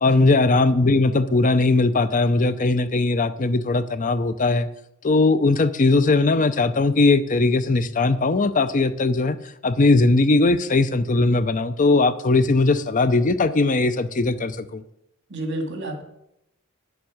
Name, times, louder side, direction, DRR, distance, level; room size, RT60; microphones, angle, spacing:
voice 1, 0.0-4.7 5.0-9.4 9.6-14.8, left 3 dB, 40° left, 13 dB, 0.6 m, -19 dB
voice 2, 15.3-16.0, right 1 dB, 60° right, 4 dB, 2.3 m, -30 dB
10.0 x 7.2 x 6.3 m, 0.82 s
head